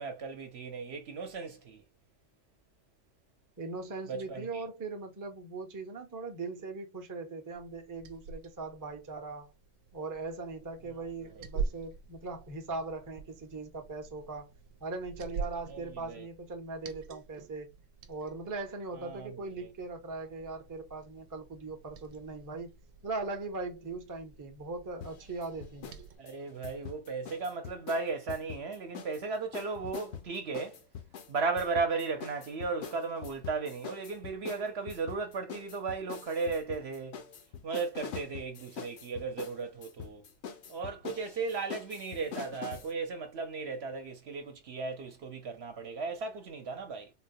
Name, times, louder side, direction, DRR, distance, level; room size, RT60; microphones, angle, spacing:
voice 1, 0.0-1.8 4.1-4.6 15.7-15.8 16.1-16.3 19.0-19.4 26.2-30.8 31.3-37.2 37.6-40.2 40.7-47.1, right 4 dB, 60° right, 0.9 m, -35 dB
voice 2, 3.6-9.5 9.9-14.5 14.8-17.7 18.1-22.7 23.0-25.9, right 3 dB, 20° right, 0.6 m, -40 dB
Liquid, 7.5-26.2, right 5 dB, 85° right, 0.9 m, -45 dB
sound 1, 25.0-26.0 26.3-29.2 29.5-42.9, left 7 dB, 65° left, 0.8 m, -44 dB
4.0 x 2.2 x 2.7 m
omnidirectional pair, 1.3 m